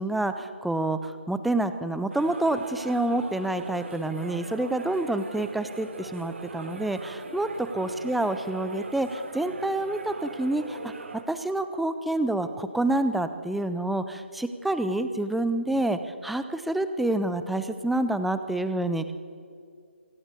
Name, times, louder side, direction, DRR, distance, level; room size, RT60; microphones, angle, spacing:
voice 1, 0.0-10.9 11.3-19.1, right 2 dB, ahead, 10 dB, 0.5 m, -28 dB
sound 1, 2.1-11.2, right 3 dB, 70° right, 3.7 m, -40 dB
26.5 x 17.5 x 8.3 m, 2.3 s
hypercardioid pair, 170°, 7 cm